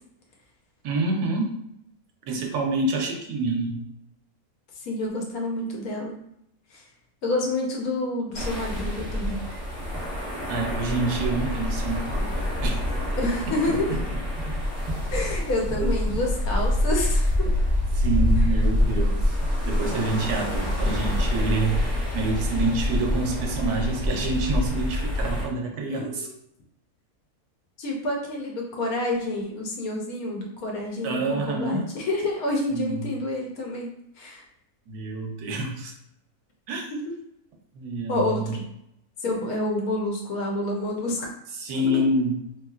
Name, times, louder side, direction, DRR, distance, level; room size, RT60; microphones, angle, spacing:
voice 1, 0.8-1.6 2.3-3.8 10.5-12.8 13.5-13.6 15.8-16.0 17.9-19.4 19.6-26.3 31.0-31.9 32.7-33.1 34.9-35.9 36.7-36.8 37.7-38.6 41.6-42.4, right 2 dB, 85° right, 2 dB, 1.2 m, -27 dB
voice 2, 4.8-6.1 6.7-6.8 7.2-9.4 13.2-14.0 15.1-17.5 25.9-26.3 27.8-34.4 36.9-37.0 38.1-38.6 39.2-41.3 41.9-42.0, left 1 dB, 70° left, -1 dB, 1.2 m, -28 dB
sound 1, 8.3-25.5, left 1 dB, 20° right, 0.7 m, -26 dB
3.2 x 2.9 x 2.3 m, 0.76 s
omnidirectional pair, 1.6 m